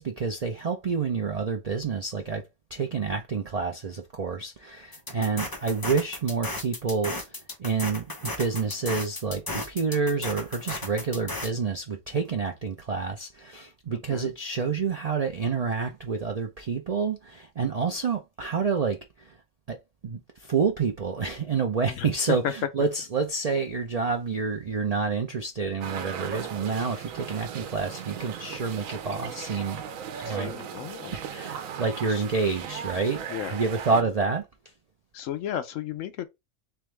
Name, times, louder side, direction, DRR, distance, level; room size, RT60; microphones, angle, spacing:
voice 1, 0.0-2.4 2.7-19.4 19.7-19.8 20.0-29.8 30.2-30.5 31.1-34.5, right 5 dB, 60° right, 0.4 m, -28 dB
sound 1, 4.9-11.5, left 2 dB, 20° left, 0.8 m, -35 dB
voice 2, 5.1-5.5 13.9-14.3 21.9-22.5 30.1-31.2 32.1-32.3 33.3-33.6 33.9-34.1 35.1-36.3, left 10 dB, 75° left, 1.0 m, -34 dB
sound 2, 25.8-34.0, right 8 dB, 85° right, 1.1 m, -37 dB
3.5 x 3.5 x 3.2 m
omnidirectional pair, 1.4 m